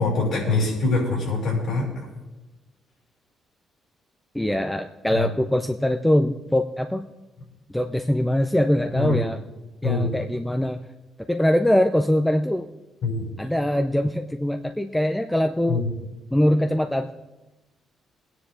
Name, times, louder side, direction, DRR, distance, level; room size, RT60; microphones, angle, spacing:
voice 1, 0.0-2.0 5.1-5.3 9.0-9.2 9.8-10.1 13.0-13.2 15.7-15.9, left 3 dB, 70° left, -4 dB, 5.8 m, -24 dB
voice 2, 4.3-7.0 7.7-9.4 9.8-10.8 11.3-12.7 13.4-15.8 16.3-17.1, left 1 dB, 5° left, 6 dB, 0.6 m, -22 dB
20.5 x 9.7 x 3.8 m, 1.1 s
cardioid pair, 90°, 0 cm